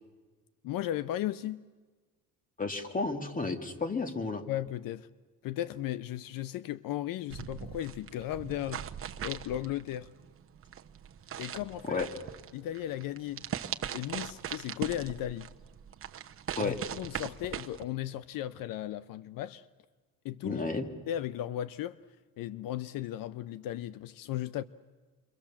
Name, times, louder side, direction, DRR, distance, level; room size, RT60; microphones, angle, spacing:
voice 1, 0.6-1.6 4.5-5.1 5.4-8.9 9.2-10.1 11.4-12.0 12.5-13.4 13.9-15.5 16.6-19.6 20.2-20.6 21.1-22.0 22.4-24.6, left 13 dB, 75° left, 0.7 m, -36 dB
voice 2, 2.6-4.4 11.9-12.1 16.6-16.7 20.4-20.9, left 3 dB, 25° left, 2.3 m, -32 dB
sound 1, 7.3-17.8, right 9 dB, 40° right, 1.0 m, -40 dB
29.0 x 23.5 x 7.3 m
cardioid pair, 125°, 34 cm